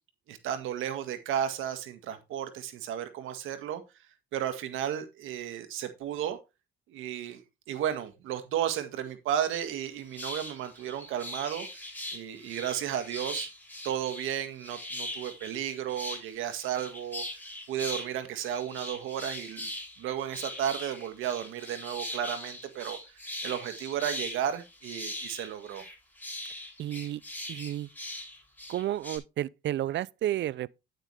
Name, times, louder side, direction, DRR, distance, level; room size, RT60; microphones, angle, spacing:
voice 1, 0.3-3.8 4.3-6.4 6.9-11.7 12.1-13.5 13.8-17.2 17.7-19.7 20.0-23.0 23.4-25.8, right 10 dB, 90° right, 1.9 m, -33 dB
sound 1, 9.8-9.9 10.1-18.1 18.4-29.2, left 1 dB, 10° left, 7.2 m, -41 dB
voice 2, 26.8-27.2 27.5-27.9 28.7-30.8, right 13 dB, 65° right, 0.5 m, -31 dB
9.8 x 8.9 x 3.4 m
cardioid pair, 90°, 20 cm